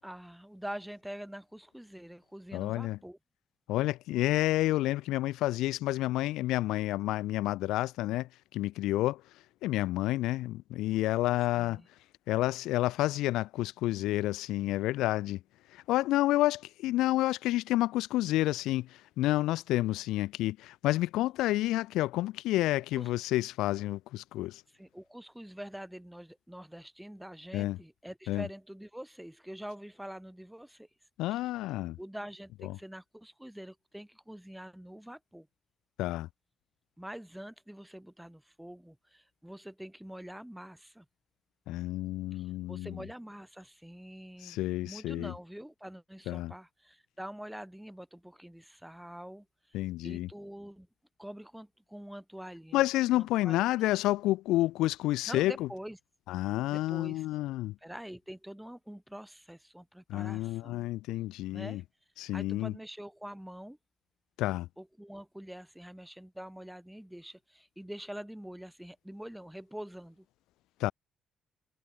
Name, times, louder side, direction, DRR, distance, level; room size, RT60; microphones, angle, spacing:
voice 1, 0.0-3.2 11.5-11.9 23.0-23.1 24.7-30.9 31.3-31.4 32.0-35.5 37.0-41.1 42.3-49.8 50.0-50.9 51.2-52.8 53.1-53.6 55.3-56.0 56.7-57.3 57.8-60.9 61.5-61.8 62.2-63.8 64.8-70.3, equal, 5° right, 7.6 m, -45 dB
voice 2, 2.5-3.0 3.7-9.2 9.6-11.8 12.3-15.4 15.7-24.6 27.5-27.8 28.3-28.5 31.2-32.0 32.6-32.8 36.0-36.3 41.7-43.0 44.4-45.3 46.3-46.5 49.7-50.3 52.7-55.7 56.3-57.7 60.1-61.8 62.2-62.7 64.4-64.7 70.8-70.9, left 16 dB, 85° left, 1.4 m, -29 dB
supercardioid pair, 75°, 0 cm